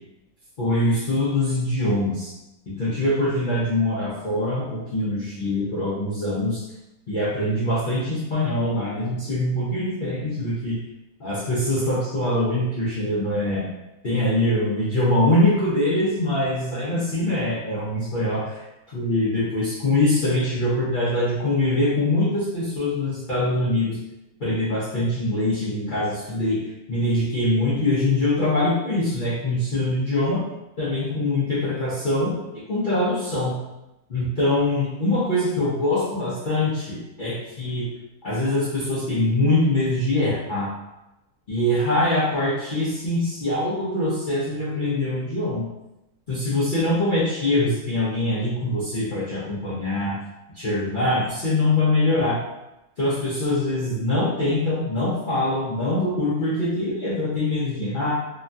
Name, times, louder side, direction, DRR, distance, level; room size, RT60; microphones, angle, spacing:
voice 1, 0.6-2.3 2.7-6.6 7.1-10.8 11.2-13.7 14.0-18.6 18.9-24.0 24.4-30.4 30.8-32.3 32.7-33.5 34.1-37.9 38.2-40.7 41.5-45.7 46.3-50.2 50.6-52.4 53.0-58.1, left 1 dB, 55° left, -10 dB, 0.5 m, -23 dB
3.0 x 2.2 x 2.5 m, 0.93 s
omnidirectional pair, 1.6 m